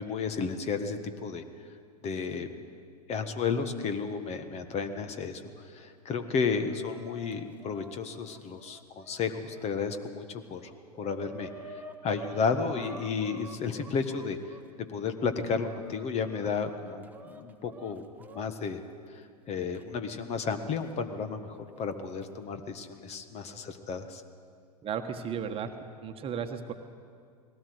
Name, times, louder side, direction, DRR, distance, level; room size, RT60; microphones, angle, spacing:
voice 1, 0.0-1.4 2.0-2.6 3.1-5.4 5.7-10.7 11.0-14.4 14.9-18.8 19.1-24.2, left 5 dB, 30° left, 9 dB, 1.6 m, -33 dB
Chicken rooster, 6.2-9.7 10.2-10.3 10.6-14.6 15.2-18.5 19.7-19.8 20.8-20.9 21.9-22.3, right 2 dB, 10° right, 1.3 m, -49 dB
voice 2, 24.8-26.7, right 7 dB, 25° right, 6 dB, 1.4 m, -35 dB
20.0 x 17.5 x 8.0 m, 2.2 s
hypercardioid pair, 100°, 20 cm